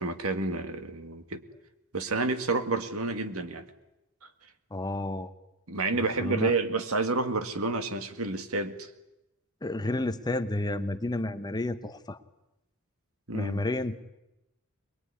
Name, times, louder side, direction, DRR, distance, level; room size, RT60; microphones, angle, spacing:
voice 1, 0.0-1.4 1.9-3.7 5.7-8.8 13.3-13.6, right 3 dB, 70° right, 8 dB, 1.9 m, -29 dB
voice 2, 4.7-5.3 6.2-6.5 9.6-12.2 13.3-14.0, left 2 dB, 20° left, 10 dB, 1.0 m, -31 dB
22.5 x 22.0 x 9.8 m, 0.93 s
head